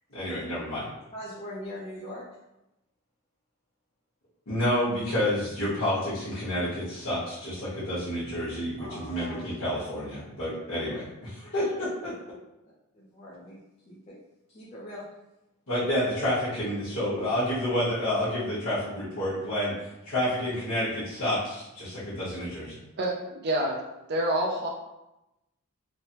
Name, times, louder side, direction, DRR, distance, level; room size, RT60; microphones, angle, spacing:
voice 1, 0.1-0.9 4.5-12.1 15.7-22.8, left 1 dB, 65° left, -12 dB, 1.1 m, -29 dB
voice 2, 1.1-2.2 8.8-9.4 11.2-11.7 12.9-13.6 13.8-14.2 14.5-15.0, left 1 dB, 30° left, -8 dB, 0.5 m, -41 dB
voice 3, 23.0-23.8 24.1-24.7, right 1 dB, 50° right, -1 dB, 0.5 m, -27 dB
3.1 x 2.1 x 2.8 m, 0.93 s
head